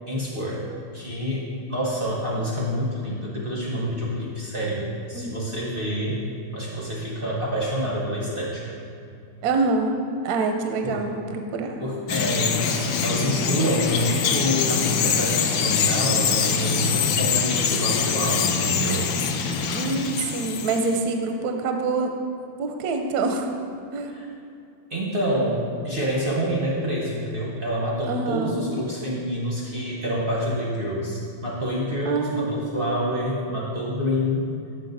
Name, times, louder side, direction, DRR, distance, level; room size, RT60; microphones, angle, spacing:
voice 1, 0.1-0.6 0.9-6.2 6.5-8.6 10.8-11.0 11.8-19.1 24.1-24.3 24.9-34.5, equal, 50° right, -4 dB, 0.7 m, -27 dB
voice 2, 5.1-5.5 9.4-10.0 10.2-11.8 19.7-22.1 22.6-23.5 23.9-24.1 28.1-28.6 32.0-32.6, right 3 dB, 70° right, 4 dB, 1.0 m, -26 dB
Bird vocalization bird call bird song, 12.1-21.0, left 6 dB, 75° left, 0.9 m, -24 dB
6.7 x 6.2 x 3.9 m, 2.6 s
omnidirectional pair, 2.1 m